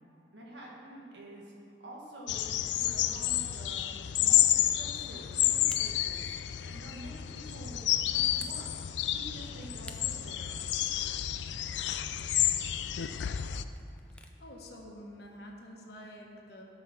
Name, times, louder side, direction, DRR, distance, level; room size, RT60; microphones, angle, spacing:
voice 1, 0.3-1.5 1.8-3.9 4.2-6.4 6.6-8.7 9.1-10.6, right 1 dB, 85° right, -3 dB, 1.9 m, -48 dB
sound 1, 2.3-13.6, left 12 dB, 80° left, 0.4 m, -30 dB
Camera, 3.2-14.4, left 2 dB, 5° left, 0.5 m, -56 dB
voice 2, 14.1-16.6, left 1 dB, 65° left, 0 dB, 1.4 m, -48 dB
12.5 x 5.6 x 5.9 m, 2.7 s
head